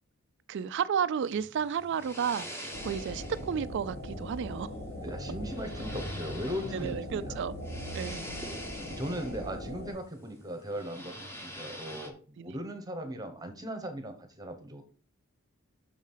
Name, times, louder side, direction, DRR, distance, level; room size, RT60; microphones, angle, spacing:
voice 1, 0.5-4.7 6.7-7.6 7.9-8.3 12.4-12.5, right 7 dB, 55° right, 0.3 m, -32 dB
sound 1, 1.2-12.1, equal, 10° left, 1.1 m, -46 dB
sound 2, 2.7-9.9, equal, 70° left, 1.8 m, -40 dB
voice 2, 4.9-7.4 8.8-14.8, equal, 20° right, 1.1 m, -38 dB
6.4 x 4.9 x 5.5 m
head